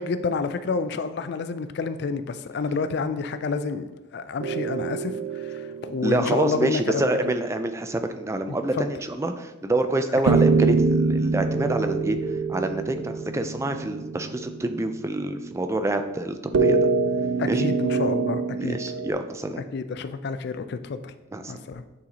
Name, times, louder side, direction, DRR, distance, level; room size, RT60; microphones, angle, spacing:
voice 1, 0.0-7.3 8.5-8.9 10.3-10.4 17.4-18.8 19.7-21.1 21.5-21.8, left 4 dB, 55° left, 0.4 m, -29 dB
sound 1, 4.4-7.1 10.3-14.9 16.5-19.1, right 4 dB, 85° right, 0.4 m, -25 dB
voice 2, 6.0-12.2 12.5-16.9 17.5-17.7 18.5-19.6 21.3-21.5, right 1 dB, 15° right, 0.4 m, -27 dB
8.6 x 4.0 x 2.9 m
head